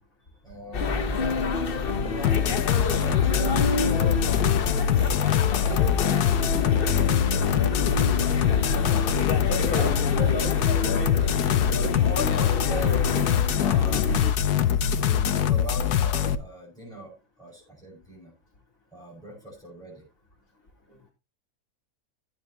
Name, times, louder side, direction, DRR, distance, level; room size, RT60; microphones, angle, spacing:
voice 1, 0.4-3.9 5.5-5.9 12.6-14.1 15.0-18.3 18.9-20.1, right 2 dB, ahead, -3 dB, 7.0 m, -40 dB
sound 1, 0.7-14.3, left 4 dB, 40° left, 1.1 m, -28 dB
sound 2, 2.2-16.4, left 9 dB, 80° left, 1.4 m, -23 dB
voice 2, 6.6-7.0 8.6-9.1 9.5-12.5 20.9-21.1, right 2 dB, 55° left, -5 dB, 5.4 m, -39 dB
16.0 x 9.2 x 3.0 m, 0.27 s
omnidirectional pair, 1.7 m